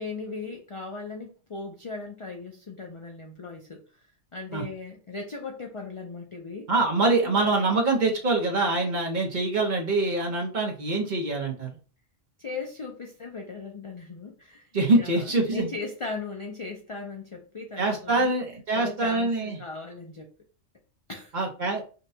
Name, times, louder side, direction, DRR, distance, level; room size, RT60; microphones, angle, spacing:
voice 1, 0.0-4.0 4.3-6.7 7.2-7.6 12.4-14.7 14.9-18.4 18.7-20.3 21.1-21.3, left 3 dB, 55° left, 1 dB, 0.3 m, -38 dB
voice 2, 6.7-11.7 14.7-15.7 17.8-19.6 21.3-21.8, right 2 dB, 45° right, 0 dB, 0.9 m, -24 dB
5.4 x 2.2 x 2.7 m, 0.37 s
omnidirectional pair, 1.3 m